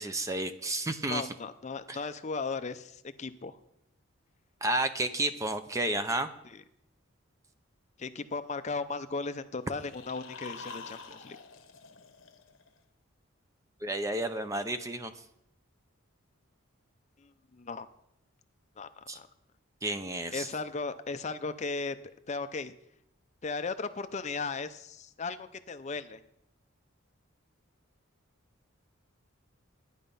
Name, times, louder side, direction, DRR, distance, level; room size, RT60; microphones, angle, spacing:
voice 1, 0.0-1.2 1.9-2.0 4.6-6.3 13.8-15.1 19.1-19.2 19.8-20.5, right 1 dB, 15° right, 9 dB, 0.5 m, -31 dB
voice 2, 1.1-3.6 6.4-6.6 8.0-11.4 17.2-17.9 18.8-19.3 20.3-22.0 22.3-22.7 23.4-26.2, left 4 dB, 35° left, 11 dB, 0.5 m, -36 dB
sound 1, 9.6-12.8, left 4 dB, 65° left, 1.1 m, -47 dB
10.5 x 10.0 x 5.4 m, 0.79 s
head